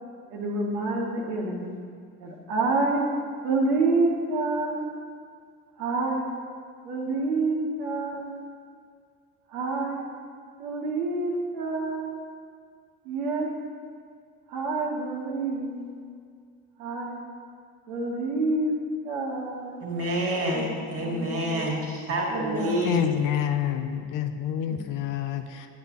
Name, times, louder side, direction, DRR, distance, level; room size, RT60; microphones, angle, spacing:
voice 1, 0.3-1.7 2.2-3.1 3.4-4.9 5.8-6.3 6.8-8.4 9.5-10.0 10.6-12.2 13.0-13.5 14.5-15.9 16.8-17.2 17.9-18.7 19.0-19.8 20.5-20.7 21.0-21.7 22.3-22.8 24.7-24.8, right 3 dB, 70° right, -1 dB, 1.4 m, -28 dB
voice 2, 19.8-23.1, equal, 30° right, -2 dB, 2.0 m, -28 dB
voice 3, 22.8-25.7, left 10 dB, 45° left, 8 dB, 0.5 m, -28 dB
9.4 x 9.2 x 3.0 m, 2.1 s
figure-of-eight pair, 60°, 46 cm